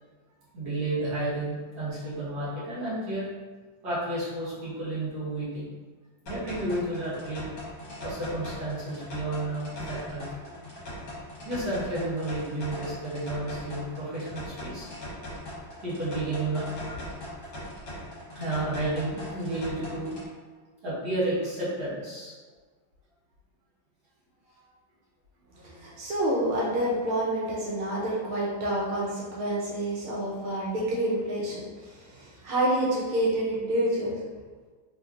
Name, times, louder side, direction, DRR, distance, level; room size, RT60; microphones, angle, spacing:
voice 1, 0.5-3.3 3.8-5.7 6.2-7.5 8.0-10.5 11.4-14.9 15.8-16.7 18.3-20.1 20.8-22.3, right 2 dB, 55° right, -10 dB, 1.6 m, -31 dB
sound 1, 6.3-20.3, left 1 dB, 60° left, 1.7 m, -40 dB
voice 2, 25.5-34.2, right 1 dB, 85° right, -5 dB, 1.6 m, -28 dB
3.8 x 3.0 x 2.4 m, 1.4 s
omnidirectional pair, 2.3 m